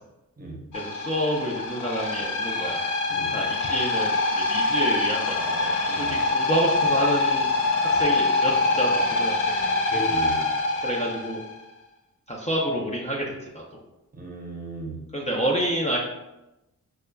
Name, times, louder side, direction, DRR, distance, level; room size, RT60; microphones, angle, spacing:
sound 1, 0.7-11.5, left 2 dB, 60° left, 0.7 m, -24 dB
voice 1, 0.7-2.8 3.3-7.5 7.8-9.7 10.8-11.4 12.3-13.6 15.1-16.0, equal, 20° left, -3 dB, 0.5 m, -28 dB
voice 2, 9.9-10.4 14.1-15.0, right 2 dB, 25° right, -1 dB, 0.8 m, -35 dB
6.3 x 2.2 x 2.2 m, 0.96 s
wide cardioid pair, 125°, 35 cm